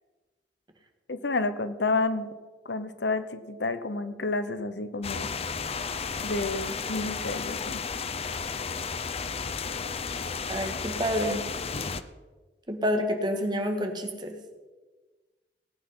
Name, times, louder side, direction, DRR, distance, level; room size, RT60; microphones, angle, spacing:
voice 1, 1.1-2.3 2.7-5.3 6.2-7.8, left 3 dB, 75° left, 12 dB, 0.9 m, -30 dB
sound 1, 5.0-12.0, left 5 dB, 35° left, 0.6 m, -33 dB
voice 2, 10.5-11.4 12.7-14.3, equal, 25° right, 4 dB, 1.7 m, -28 dB
18.0 x 8.9 x 5.6 m, 1.3 s
head